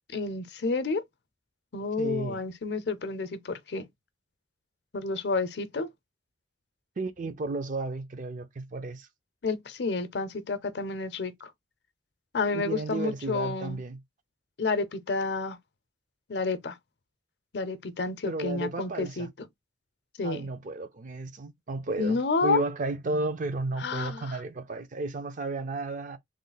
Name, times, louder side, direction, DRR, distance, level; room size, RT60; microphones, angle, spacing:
voice 1, 0.1-1.0 1.7-3.9 4.9-5.9 9.4-11.5 12.3-13.8 14.6-15.6 16.3-16.8 17.5-19.3 20.2-20.4 22.0-22.6 23.8-24.4, left 4 dB, 65° left, 0.6 m, -30 dB
voice 2, 2.0-2.4 7.0-9.1 12.5-14.0 18.3-19.3 20.2-26.2, right 2 dB, 45° right, 0.5 m, -33 dB
3.1 x 2.0 x 3.9 m
head